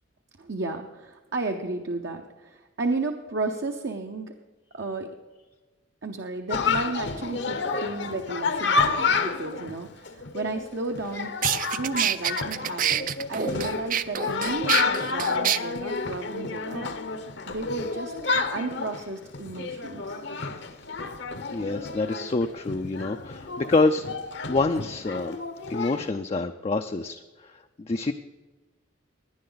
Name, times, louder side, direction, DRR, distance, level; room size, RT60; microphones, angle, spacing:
voice 1, 0.4-4.3 4.7-5.1 6.0-11.3 11.7-17.0 17.5-18.1 18.5-20.2, right 3 dB, 60° right, 3 dB, 0.8 m, -33 dB
Chatter, 6.5-26.1, left 4 dB, 60° left, 0.9 m, -30 dB
sound 1, 11.0-11.1 11.4-15.6, right 10 dB, 40° right, 0.4 m, -26 dB
voice 2, 21.5-24.1 24.5-25.4 25.7-28.1, left 3 dB, 30° left, 6 dB, 0.4 m, -27 dB
17.5 x 10.5 x 4.0 m, 1.2 s
head